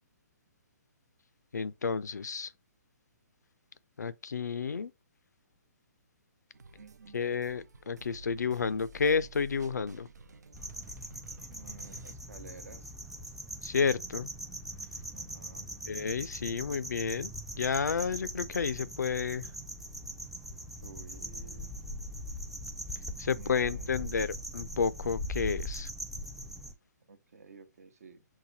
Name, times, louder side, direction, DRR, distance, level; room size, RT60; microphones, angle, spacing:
voice 1, 1.5-2.5 4.0-4.9 7.1-10.1 13.6-14.3 15.9-17.3 17.6-19.5 23.2-25.9, left 5 dB, 85° left, 0.4 m, -31 dB
sound 1, 6.5-12.1, right 3 dB, 85° right, 0.4 m, -51 dB
voice 2, 6.7-7.5 11.5-12.9 15.1-15.7 20.8-21.7 23.3-24.2 27.1-28.3, right 4 dB, 65° right, 0.8 m, -52 dB
sound 2, 10.5-26.7, equal, ahead, 0.3 m, -41 dB
sound 3, 13.9-25.5, right 5 dB, 50° right, 1.1 m, -58 dB
5.7 x 2.2 x 2.6 m
hypercardioid pair, 135°, 9 cm